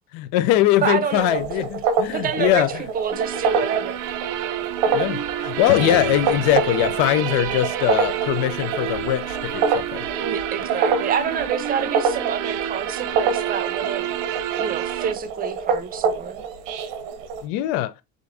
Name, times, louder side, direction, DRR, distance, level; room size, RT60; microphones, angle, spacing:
voice 1, 0.1-2.8 4.9-10.1 17.4-17.9, left 13 dB, 65° left, 0.6 m, -21 dB
voice 2, 0.8-1.5 2.1-4.0 10.2-14.2 14.6-16.4, right 7 dB, 25° right, 0.6 m, -27 dB
sound 1, 1.1-17.4, right 5 dB, 85° right, 1.0 m, -27 dB
sound 2, 3.1-15.1, right 10 dB, 60° right, 0.7 m, -29 dB
sound 3, 5.7-11.2, left 8 dB, 80° left, 1.0 m, -39 dB
5.1 x 3.5 x 2.5 m
cardioid pair, 145°, 37 cm